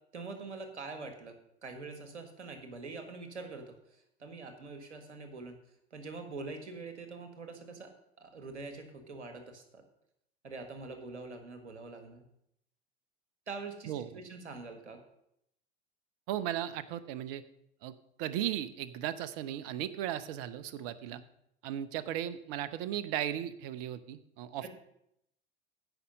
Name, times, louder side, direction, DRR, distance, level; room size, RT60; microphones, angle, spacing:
voice 1, 0.1-1.4 1.6-5.6 5.9-7.9 8.2-9.8 10.4-12.2 13.5-15.0, right 3 dB, 85° right, 6 dB, 1.7 m, -44 dB
voice 2, 16.3-17.4 17.8-21.2 21.6-24.7, right 11 dB, 55° right, 15 dB, 0.9 m, -36 dB
15.0 x 5.6 x 5.3 m, 0.78 s
figure-of-eight pair, 80°, 34 cm